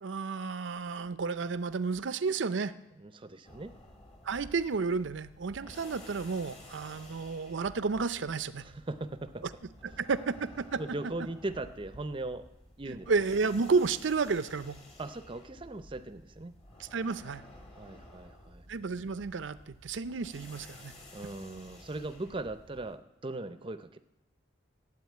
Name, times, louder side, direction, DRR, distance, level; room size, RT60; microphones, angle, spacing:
voice 1, 0.0-2.7 4.2-8.6 9.8-10.8 12.9-14.8 16.8-17.4 18.7-20.9, right 4 dB, 75° right, 14 dB, 0.6 m, -31 dB
voice 2, 3.0-3.7 8.6-9.5 10.8-12.5 12.8-13.1 15.0-16.5 17.7-18.7 21.1-24.0, right 2 dB, 25° right, 11 dB, 0.6 m, -39 dB
sound 1, 3.4-23.0, left 1 dB, 30° left, 1.9 m, -53 dB
12.5 x 8.1 x 9.3 m, 0.95 s
head